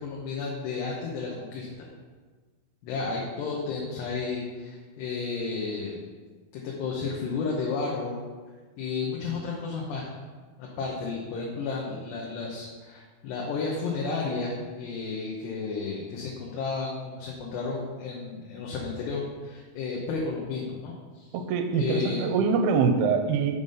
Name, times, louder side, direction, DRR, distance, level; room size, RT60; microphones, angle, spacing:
voice 1, 0.0-1.9 2.8-6.0 6.5-8.2 8.8-10.1 10.6-21.4 21.7-22.3, left 4 dB, 85° left, -3 dB, 3.2 m, -32 dB
voice 2, 21.3-23.6, right 5 dB, 80° right, 7 dB, 2.6 m, -24 dB
7.3 x 5.5 x 6.4 m, 1.4 s
omnidirectional pair, 4.7 m